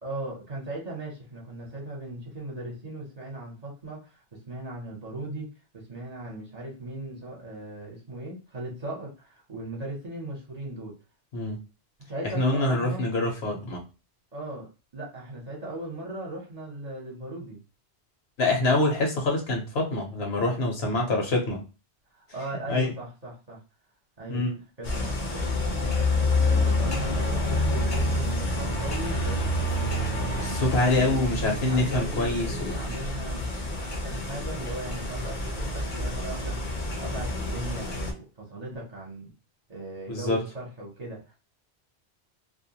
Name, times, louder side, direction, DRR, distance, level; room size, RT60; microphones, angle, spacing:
voice 1, 0.0-11.0 12.1-13.0 14.3-17.6 22.1-23.6 24.2-24.5 24.8-26.0 26.4-30.4 30.9-36.6 37.0-39.3 39.7-41.4, right 1 dB, 40° right, -3 dB, 0.9 m, -38 dB
voice 2, 12.3-13.8 18.4-21.6 22.7-22.9 24.3-24.5 30.4-32.8 40.1-40.4, left 2 dB, 70° left, 1 dB, 1.1 m, -25 dB
sound 1, 24.8-38.1, left 2 dB, 45° left, 0.6 m, -28 dB
2.5 x 2.2 x 2.7 m, 0.31 s
omnidirectional pair, 1.1 m